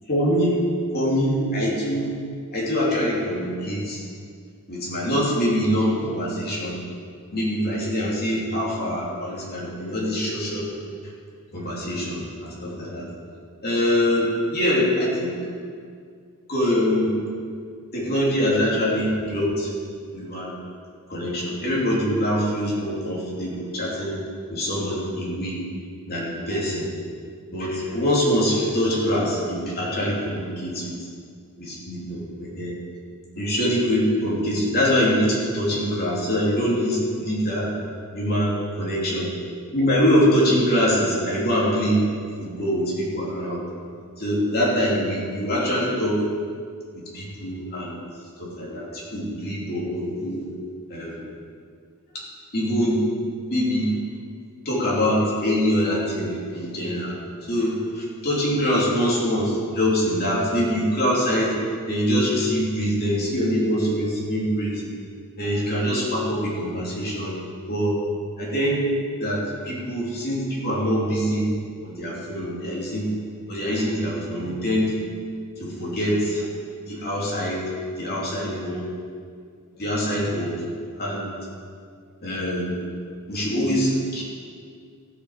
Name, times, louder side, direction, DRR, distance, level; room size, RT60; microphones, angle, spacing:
voice 1, 0.1-0.6 0.9-2.1 2.5-4.0 4.7-6.8 7.3-10.7 11.5-13.1 13.6-15.4 16.5-17.2 17.9-19.7 20.1-20.6 21.1-24.2 24.5-25.6 26.1-26.9 27.5-31.0 31.6-32.7 33.4-37.7 38.1-39.3 39.7-42.0 42.4-43.6 44.2-46.2 46.9-47.9 48.4-50.5 50.9-51.2 52.5-53.0 53.5-53.9 54.6-57.2 57.5-64.8 65.4-67.4 67.7-68.0 68.4-68.8 69.2-71.5 71.8-73.1 73.5-74.9 75.6-76.4 76.9-77.6 78.0-78.8 79.7-80.6 81.0-81.3 82.2-82.9 83.3-84.2, equal, 45° left, -5 dB, 2.9 m, -24 dB
15.0 x 8.5 x 4.9 m, 2.2 s
head